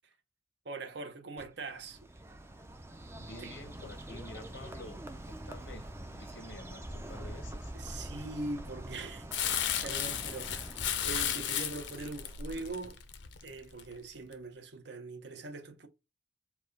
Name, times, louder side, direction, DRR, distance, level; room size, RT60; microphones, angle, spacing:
voice 1, 0.6-2.0 3.4-3.6 7.7-9.3 9.8-10.7 11.0-13.0 13.4-15.9, right 3 dB, 60° right, 0.8 m, -42 dB
Bird, 1.4-12.8, right 1 dB, 15° right, 0.5 m, -45 dB
voice 2, 3.2-5.0 5.3-7.7, left 2 dB, 85° left, 0.9 m, -49 dB
Crumpling crinkling, 9.3-13.8 14.3-14.4, left 10 dB, 65° left, 0.6 m, -34 dB
4.7 x 2.2 x 4.6 m
head